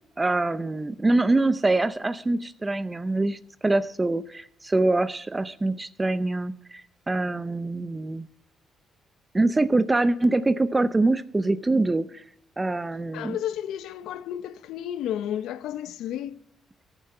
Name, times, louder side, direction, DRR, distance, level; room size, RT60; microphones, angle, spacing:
voice 1, 0.2-8.3 9.3-12.2 12.6-13.4, right 2 dB, 20° right, 0.6 m, -24 dB
voice 2, 13.1-16.4, left 10 dB, 85° left, 0.7 m, -32 dB
14.5 x 8.7 x 5.5 m
cardioid pair, 90°, 0 cm